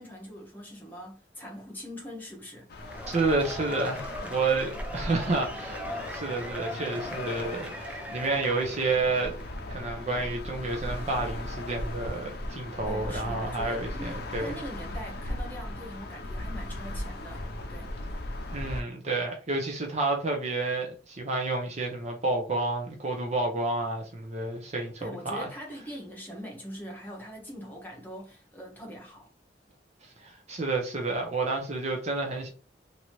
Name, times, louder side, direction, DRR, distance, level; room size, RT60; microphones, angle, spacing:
voice 1, 0.0-2.9 12.9-17.9 25.0-29.3, equal, 10° left, 1.1 m, -42 dB
sound 1, 2.7-18.8, left 1 dB, 60° left, 0.6 m, -38 dB
Cheering / Applause / Crowd, 2.8-9.6, equal, 10° right, 0.3 m, -40 dB
voice 2, 3.1-5.8 6.1-9.4 9.7-14.6 18.5-25.5 30.2-32.5, right 3 dB, 40° right, 0.7 m, -30 dB
3.0 x 2.6 x 3.0 m
head